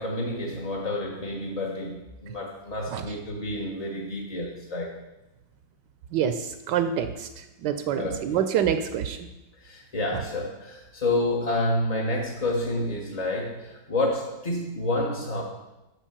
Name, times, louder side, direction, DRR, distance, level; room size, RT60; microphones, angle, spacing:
voice 1, 0.0-5.0 7.9-8.4 9.6-15.4, left 1 dB, 30° left, -2 dB, 0.7 m, -29 dB
voice 2, 6.1-7.3 7.6-9.3, right 9 dB, 75° right, 9 dB, 1.1 m, -26 dB
6.4 x 5.8 x 6.7 m, 0.99 s
omnidirectional pair, 2.1 m